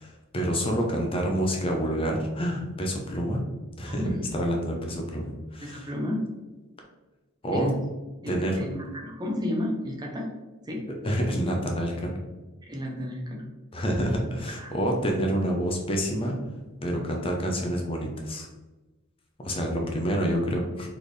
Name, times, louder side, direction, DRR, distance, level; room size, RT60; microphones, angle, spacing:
voice 1, 0.0-3.4 3.8-5.9 7.4-7.7 8.3-8.6 11.0-12.2 13.7-16.4 16.8-18.5 19.4-20.9, equal, 25° left, 1 dB, 0.6 m, -28 dB
voice 2, 5.6-6.2 7.5-7.8 8.2-10.3 10.7-10.8 12.6-13.4 14.5-14.7, left 1 dB, 20° right, 0 dB, 0.7 m, -32 dB
4.3 x 3.4 x 3.2 m, 1.1 s
head